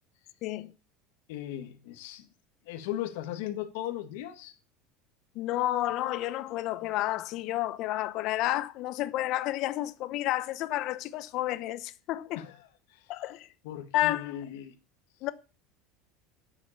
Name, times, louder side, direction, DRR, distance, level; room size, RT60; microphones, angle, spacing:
voice 1, 0.4-0.7 5.3-12.4 13.1-13.5 13.9-14.3 15.2-15.3, left 15 dB, 50° left, 0.8 m, -30 dB
voice 2, 1.3-2.3 2.6-4.5 12.3-12.6 12.9-13.1 13.6-14.7, left 12 dB, 80° left, 1.6 m, -37 dB
9.7 x 7.4 x 7.2 m
supercardioid pair, 140°, 0 cm